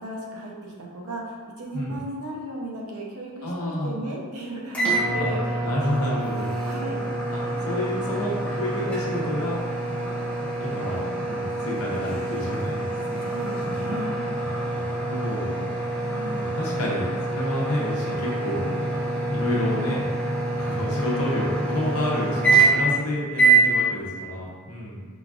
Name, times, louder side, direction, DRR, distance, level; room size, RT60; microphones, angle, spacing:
voice 1, 0.0-5.4 5.7-5.8 6.6-7.0 13.2-14.1 15.9-16.4, right 1 dB, 75° right, -2 dB, 0.7 m, -35 dB
voice 2, 3.4-4.0 5.6-6.5 7.3-9.8 10.6-13.2 13.6-13.8 14.7-15.6 16.4-18.7 19.3-20.1 20.5-25.1, left 1 dB, 75° left, -4 dB, 0.8 m, -29 dB
sound 1, 4.7-23.0 23.4-23.7, right 3 dB, 5° left, 0.5 m, -26 dB
5.0 x 2.4 x 2.4 m, 1.5 s
head